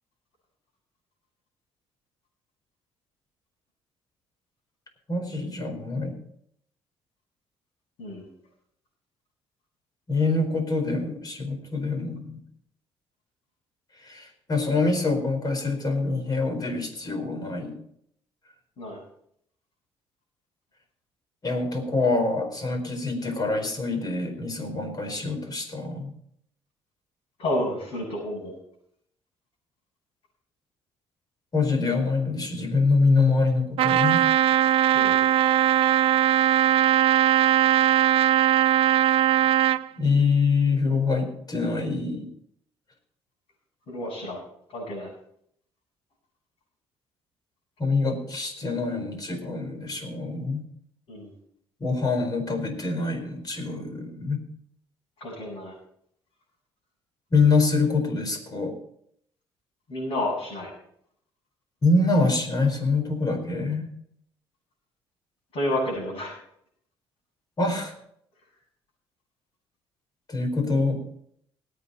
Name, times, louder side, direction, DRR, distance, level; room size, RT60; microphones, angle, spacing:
voice 1, 5.1-6.2 10.1-12.4 14.0-17.8 21.4-26.1 31.5-34.2 40.0-42.3 47.8-50.6 51.8-54.4 57.3-58.7 61.8-63.9 67.6-67.9 70.3-71.0, left 3 dB, 40° left, 5 dB, 4.5 m, -25 dB
voice 2, 27.4-28.5 34.9-35.2 43.9-44.4 44.7-45.1 51.1-51.3 55.2-55.7 59.9-60.7 65.5-66.4, left 1 dB, 65° left, -6 dB, 7.0 m, -30 dB
Trumpet, 33.8-39.8, right 11 dB, 70° right, 0.5 m, -20 dB
20.0 x 8.8 x 4.2 m, 0.68 s
cardioid pair, 80°, 10 cm